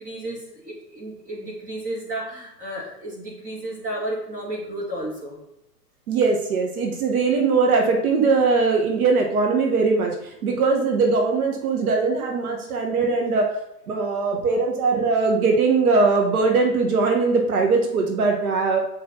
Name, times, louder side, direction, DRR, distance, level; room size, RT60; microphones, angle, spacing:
voice 1, 0.0-5.4, right 1 dB, 15° right, -3 dB, 2.6 m, -32 dB
voice 2, 6.1-13.5 13.9-18.8, right 4 dB, 60° right, 2 dB, 1.9 m, -20 dB
7.6 x 6.1 x 4.1 m, 0.85 s
hypercardioid pair, 140°, 50 cm